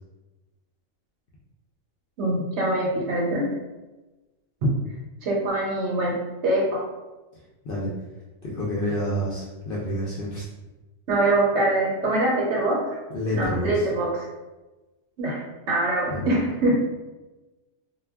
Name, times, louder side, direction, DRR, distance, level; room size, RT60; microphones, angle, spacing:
voice 1, 2.2-3.5 4.6-4.7 5.2-6.2 6.4-6.9 11.1-12.9 13.3-14.2 15.2-16.8, right 1 dB, 65° right, -2 dB, 0.9 m, -23 dB
voice 2, 8.4-10.5 13.1-13.9 16.1-16.3, equal, 65° left, -5 dB, 0.6 m, -28 dB
2.2 x 2.2 x 3.4 m, 1.1 s
omnidirectional pair, 1.4 m